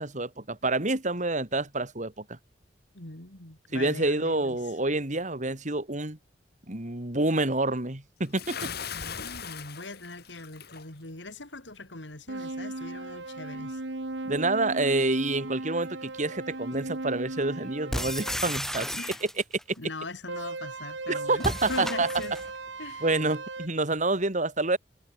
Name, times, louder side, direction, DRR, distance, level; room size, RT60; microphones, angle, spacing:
voice 1, 0.0-2.4 3.7-6.2 6.7-8.7 14.2-18.9 21.1-22.1 23.0-24.8, right 2 dB, 40° right, 2.9 m, -28 dB
voice 2, 2.9-4.7 8.9-13.8 18.9-19.2 19.8-22.4 22.8-23.1, left 2 dB, 80° left, 3.8 m, -41 dB
Bathtub (filling or washing) / Splash splatter, 8.4-10.9, left 7 dB, 60° left, 4.0 m, -38 dB
sound 1, 12.3-18.4 20.3-23.7, right 2 dB, 80° right, 1.8 m, -37 dB
sound 2, 17.9-19.6 21.4-22.5, equal, ahead, 2.9 m, -33 dB
head